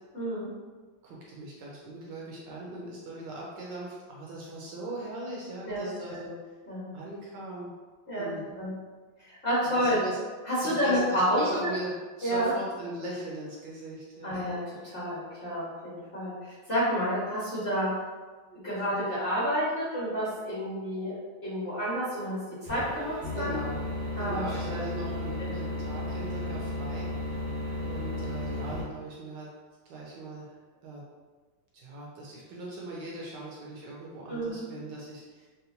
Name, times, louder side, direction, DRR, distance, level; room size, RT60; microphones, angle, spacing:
voice 1, 0.1-0.5 5.6-5.8 6.2-6.3 6.7-6.9 8.1-8.3 8.5-8.7 9.2-10.0 10.4-11.4 12.2-12.5 14.2-17.9 18.5-21.2 21.4-22.4 22.7-23.6 24.2-24.8 25.4-25.5 34.3-34.6, equal, 30° left, -11 dB, 1.2 m, -29 dB
voice 2, 1.0-6.4 6.9-7.7 8.2-8.5 9.6-10.2 10.6-11.9 12.2-14.4 23.3-23.8 24.2-27.1 27.8-29.5 29.9-30.6 30.8-31.0 31.7-35.5, right 2 dB, 70° right, -4 dB, 1.1 m, -40 dB
sound 1, 22.7-28.8, left 1 dB, 90° right, 1.6 m, -34 dB
3.9 x 2.2 x 2.7 m, 1.4 s
omnidirectional pair, 2.3 m